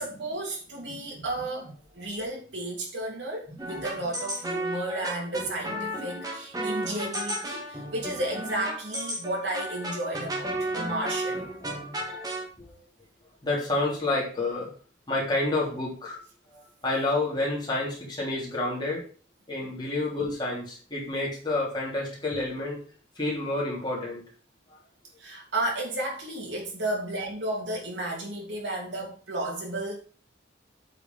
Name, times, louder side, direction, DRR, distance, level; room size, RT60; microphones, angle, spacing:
voice 1, 0.0-1.7 1.9-11.5 25.2-30.0, right 1 dB, 70° right, -2 dB, 3.0 m, -33 dB
sound 1, 3.6-12.5, right 1 dB, 20° right, 1.8 m, -33 dB
voice 2, 11.9-12.7 13.4-14.7 15.1-16.2 16.5-19.0 19.5-22.8 23.2-24.2 24.7-24.8, left 2 dB, 25° left, -4 dB, 3.2 m, -29 dB
8.4 x 5.1 x 5.2 m, 0.39 s
head